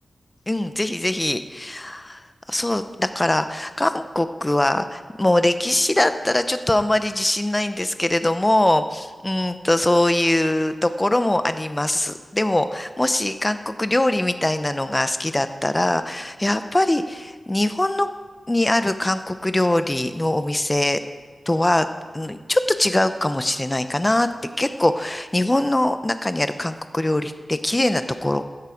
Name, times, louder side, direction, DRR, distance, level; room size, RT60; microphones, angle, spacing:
voice 1, 0.5-2.2 2.5-18.1 18.5-21.0 21.5-21.9 22.1-24.3 24.6-28.4, left 1 dB, 15° left, 10 dB, 0.7 m, -22 dB
15.5 x 10.5 x 5.0 m, 1.4 s
wide cardioid pair, 130°, 0 cm